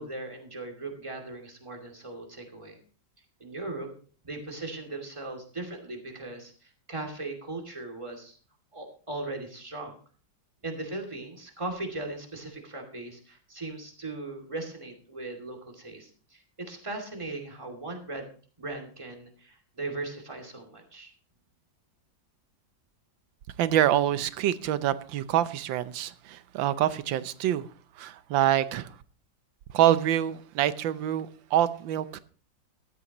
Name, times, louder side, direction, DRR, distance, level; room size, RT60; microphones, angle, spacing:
voice 1, 0.0-2.8 3.4-3.9 4.2-8.4 8.7-10.0 10.6-18.3 18.6-21.1, right 2 dB, 15° right, 2.5 m, -38 dB
voice 2, 23.6-27.7 28.0-29.0 29.7-32.2, right 11 dB, 80° right, 1.5 m, -26 dB
15.0 x 12.5 x 3.0 m
omnidirectional pair, 2.0 m